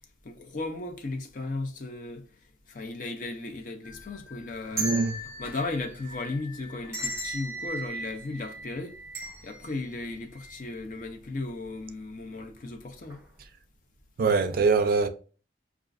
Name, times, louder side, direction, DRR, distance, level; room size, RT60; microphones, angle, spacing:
voice 1, 0.2-2.2 2.7-5.0 5.4-9.0 9.4-13.2, left 2 dB, 45° left, 0.5 m, -35 dB
sound 1, 3.8-11.0 11.4-11.5 12.4-12.7 13.0-13.2, right 1 dB, 15° right, 0.8 m, -38 dB
voice 2, 4.8-5.1 14.2-15.1, right 4 dB, 50° right, 0.3 m, -23 dB
4.9 x 2.4 x 2.4 m
head